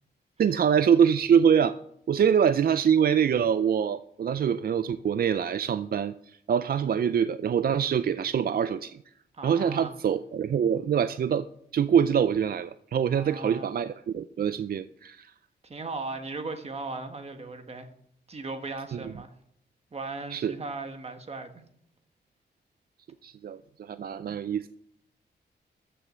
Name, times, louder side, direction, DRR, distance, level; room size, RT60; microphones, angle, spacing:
voice 1, 0.4-1.7 2.1-9.0 9.4-11.5 11.7-15.3 18.9-19.0 20.3-20.6 23.2-24.7, right 8 dB, 55° right, 0.5 m, -24 dB
voice 2, 9.3-10.0 13.1-13.7 15.6-17.9 18.3-19.3 19.9-21.6, right 3 dB, 35° right, 1.5 m, -37 dB
14.0 x 6.9 x 6.4 m
wide cardioid pair, 125°, 18 cm